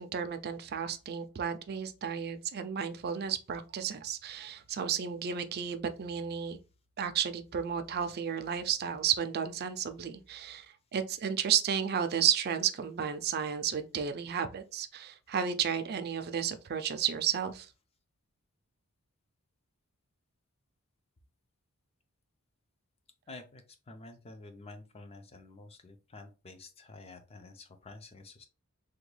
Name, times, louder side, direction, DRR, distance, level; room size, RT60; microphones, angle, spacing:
voice 1, 0.0-6.6 7.0-10.7 10.9-17.7, right 8 dB, 45° right, 0.4 m, -32 dB
voice 2, 23.3-28.4, left 3 dB, 25° left, 0.5 m, -50 dB
3.5 x 2.2 x 3.2 m
head